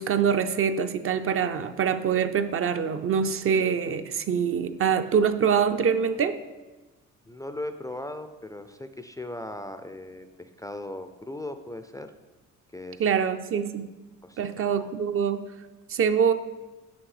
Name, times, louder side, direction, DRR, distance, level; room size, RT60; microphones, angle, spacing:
voice 1, 0.0-6.4 13.0-13.9 14.4-15.4 15.9-16.3, right 7 dB, 45° right, 10 dB, 0.5 m, -24 dB
voice 2, 7.3-12.1 12.7-13.1 14.2-14.9, left 1 dB, 10° left, 9 dB, 0.3 m, -38 dB
6.1 x 5.1 x 4.9 m, 1.2 s
cardioid pair, 90°, 30 cm